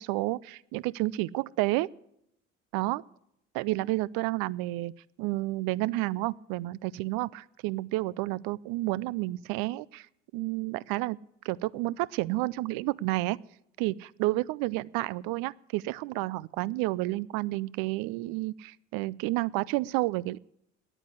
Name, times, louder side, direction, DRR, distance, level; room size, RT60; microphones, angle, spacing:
voice 1, 0.0-1.9 2.7-3.0 3.5-4.9 5.2-10.1 10.3-11.2 11.4-13.4 13.8-20.4, right 19 dB, 70° right, 23 dB, 0.5 m, -30 dB
9.9 x 9.0 x 9.6 m, 0.77 s
hypercardioid pair, 55°, 36 cm